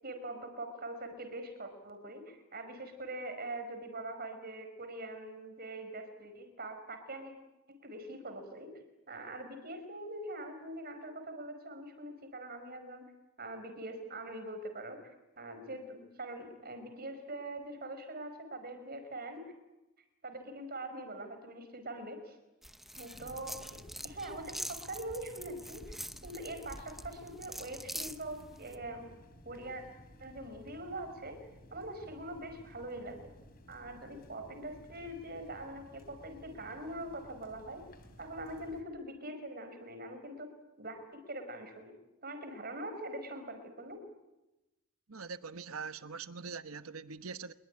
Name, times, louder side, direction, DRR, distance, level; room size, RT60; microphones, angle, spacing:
voice 1, 0.0-7.3 7.7-8.7 9.1-13.1 13.4-15.0 15.4-19.5 20.2-22.3 22.9-29.1 29.4-29.8 30.2-31.4 31.7-33.2 33.7-37.8 38.2-40.5 40.8-41.9 42.2-44.0, right 1 dB, 45° right, 5.2 m, -43 dB
sound 1, 22.6-28.8, equal, ahead, 0.9 m, -45 dB
sound 2, 23.1-38.8, equal, 45° left, 4.1 m, -56 dB
voice 2, 45.1-47.5, right 5 dB, 85° right, 1.2 m, -43 dB
25.5 x 22.0 x 9.9 m
head